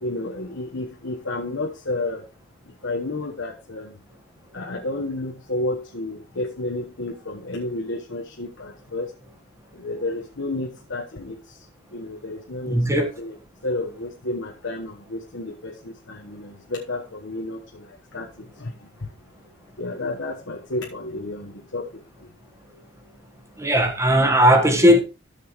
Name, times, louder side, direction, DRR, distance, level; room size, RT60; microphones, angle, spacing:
voice 1, 0.0-2.2 2.8-4.0 4.5-9.1 9.7-11.6 11.9-13.4 13.6-18.3 18.6-19.1 19.8-21.9, left 2 dB, 75° left, 1.3 m, -31 dB
voice 2, 12.7-13.0 23.6-25.0, equal, 15° right, 1.4 m, -17 dB
13.5 x 7.0 x 3.1 m
head